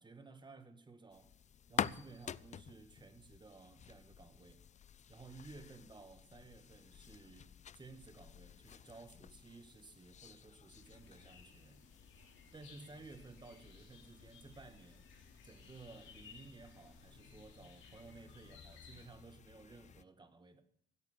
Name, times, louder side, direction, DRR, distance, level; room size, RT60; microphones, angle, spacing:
voice 1, 0.0-1.3 1.7-4.6 5.1-11.9 12.5-15.1 15.4-20.6, right 3 dB, 20° right, 1.7 m, -56 dB
sound 1, 1.1-20.0, left 8 dB, 35° left, 0.4 m, -49 dB
sound 2, 10.7-19.1, left 5 dB, 75° left, 3.4 m, -60 dB
16.0 x 8.2 x 6.6 m
cardioid pair, 90°, 20 cm